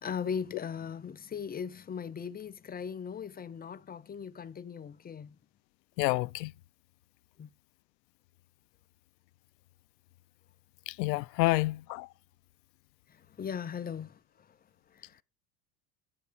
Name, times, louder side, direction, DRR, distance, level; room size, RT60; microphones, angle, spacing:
voice 1, 0.0-5.4 7.4-7.5 13.4-14.5 14.9-15.2, left 7 dB, 20° left, 0.5 m, -38 dB
voice 2, 6.0-6.5 10.9-12.1, left 20 dB, 80° left, 0.5 m, -29 dB
9.1 x 7.6 x 6.6 m
hypercardioid pair, 85°, 49 cm